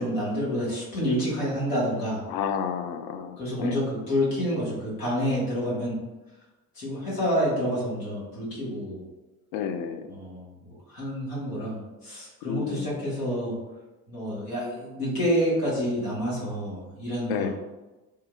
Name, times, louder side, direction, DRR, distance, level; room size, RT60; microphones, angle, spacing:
voice 1, 0.0-2.2 3.4-6.0 6.7-9.0 10.1-10.5 10.9-13.6 14.1-17.5, equal, 85° left, -7 dB, 1.4 m, -28 dB
voice 2, 2.3-3.8 9.5-10.1 12.5-12.9 17.3-17.5, left 7 dB, 55° left, 7 dB, 0.5 m, -31 dB
3.6 x 2.8 x 2.3 m, 1.1 s
hypercardioid pair, 55°, 45 cm